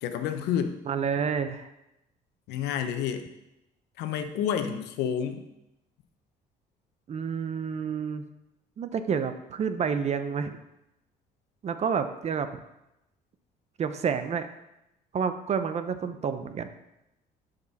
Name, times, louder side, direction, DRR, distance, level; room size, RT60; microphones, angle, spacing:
voice 1, 0.0-0.7 2.5-3.2 4.0-5.4, left 8 dB, 90° left, 8 dB, 0.9 m, -29 dB
voice 2, 0.9-1.7 7.1-8.2 8.8-10.6 11.6-12.5 13.8-14.5 15.1-16.7, right 6 dB, 40° right, 10 dB, 0.7 m, -29 dB
11.0 x 5.3 x 4.1 m, 0.89 s
cardioid pair, 110°, 17 cm